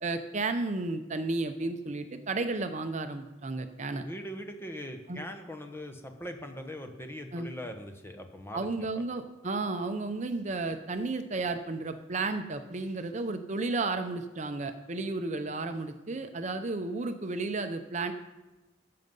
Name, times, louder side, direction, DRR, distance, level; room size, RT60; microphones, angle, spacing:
voice 1, 0.0-4.0 5.1-5.2 7.3-7.5 8.5-18.1, right 3 dB, 40° right, 8 dB, 0.7 m, -33 dB
voice 2, 4.0-9.0, equal, 10° left, 5 dB, 1.1 m, -41 dB
13.5 x 7.6 x 5.4 m, 1.1 s
head